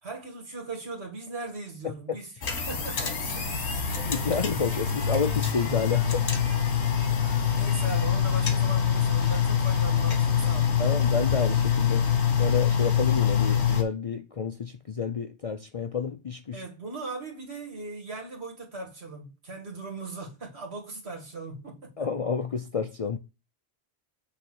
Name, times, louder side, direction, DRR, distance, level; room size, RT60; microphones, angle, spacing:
voice 1, 0.0-3.5 7.0-7.2 7.5-10.7 16.5-22.1, right 3 dB, 70° right, 2.4 m, -39 dB
voice 2, 1.8-2.2 4.0-6.3 10.8-12.1 12.4-16.6 22.0-23.2, left 5 dB, 45° left, 0.5 m, -30 dB
sound 1, 2.4-13.8, left 8 dB, 75° left, 1.5 m, -25 dB
8.3 x 3.5 x 6.1 m
omnidirectional pair, 1.1 m